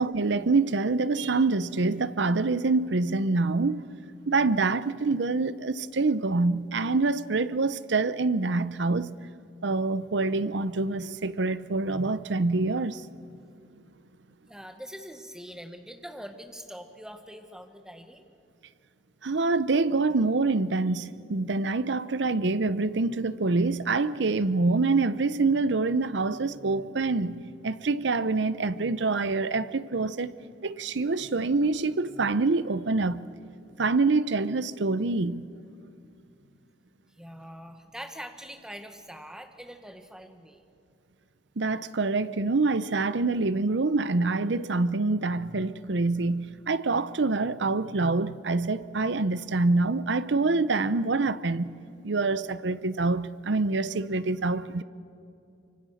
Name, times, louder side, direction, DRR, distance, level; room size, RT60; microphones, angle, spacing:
voice 1, 0.0-3.8 4.3-9.1 9.6-13.1 19.2-30.3 30.6-33.3 33.8-35.4 41.6-51.8 52.0-54.8, right 3 dB, 70° right, 0.7 m, -26 dB
voice 2, 14.5-18.2 37.1-40.6, equal, 5° right, 1.4 m, -43 dB
25.0 x 25.0 x 6.5 m
head